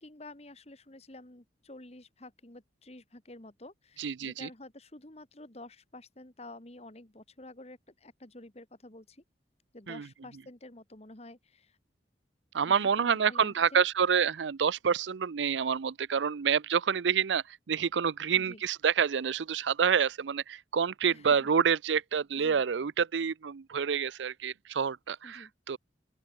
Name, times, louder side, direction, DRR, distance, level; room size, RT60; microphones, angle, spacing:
voice 1, 0.0-9.2 9.7-11.8 12.7-13.8 18.3-18.6 21.1-21.5 22.4-22.6 25.2-25.5, left 2 dB, 35° left, 2.0 m, -50 dB
voice 2, 4.0-4.5 9.9-10.1 12.5-25.8, right 7 dB, 85° right, 0.5 m, -28 dB
open air
head